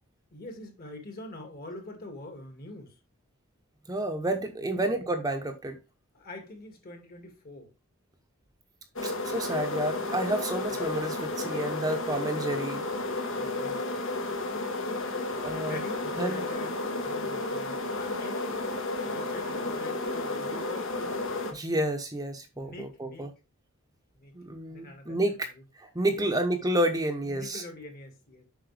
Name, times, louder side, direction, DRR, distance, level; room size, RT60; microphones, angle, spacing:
voice 1, 0.3-3.0 4.6-5.0 6.1-7.7 13.4-13.9 15.7-21.4 22.5-23.3 24.1-24.4 24.7-25.6 26.1-26.3 27.2-28.4, left 2 dB, 45° left, 2.1 m, -44 dB
voice 2, 3.9-5.8 9.0-12.8 15.3-15.8 16.2-16.4 21.5-23.3 24.3-25.5 25.8-27.6, right 1 dB, 15° right, 0.9 m, -30 dB
sound 1, 9.0-21.5, left 2 dB, 65° left, 1.4 m, -32 dB
7.9 x 5.5 x 3.3 m
head